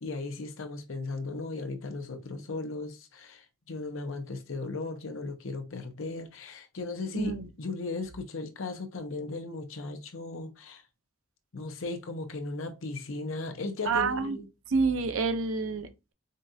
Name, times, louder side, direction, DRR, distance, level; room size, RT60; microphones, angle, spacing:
voice 1, 0.0-10.8 11.5-14.5, left 3 dB, 75° left, 0.7 m, -36 dB
voice 2, 7.1-7.5 13.9-14.4 14.7-16.1, right 4 dB, 85° right, 0.6 m, -28 dB
5.2 x 2.4 x 2.6 m
head